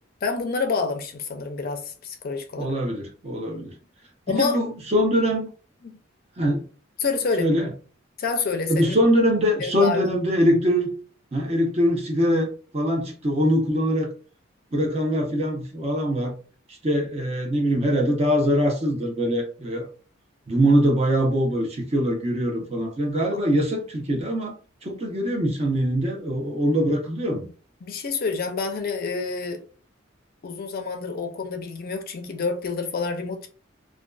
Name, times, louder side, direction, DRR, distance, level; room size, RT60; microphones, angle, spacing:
voice 1, 0.2-2.7 4.3-4.6 5.8-5.9 7.0-7.5 8.2-9.0 9.6-10.1 23.3-23.4 27.8-29.6 30.4-33.5, left 4 dB, 50° left, 0.4 m, -28 dB
voice 2, 2.6-3.7 4.3-5.5 6.4-6.6 7.4-7.7 8.7-10.9 11.3-14.1 14.7-16.3 16.7-19.8 20.5-27.5, equal, 30° right, 0.6 m, -23 dB
2.5 x 2.2 x 2.3 m
head